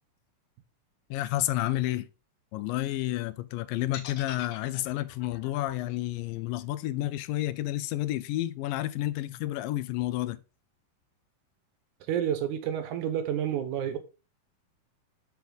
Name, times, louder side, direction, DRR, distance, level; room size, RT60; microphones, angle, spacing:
voice 1, 1.1-2.1 2.5-10.4, left 15 dB, 85° left, 2.2 m, -30 dB
sound 1, 3.9-8.0, left 9 dB, 65° left, 1.8 m, -46 dB
voice 2, 12.1-14.0, right 9 dB, 75° right, 2.1 m, -29 dB
9.4 x 4.4 x 3.8 m
omnidirectional pair, 4.0 m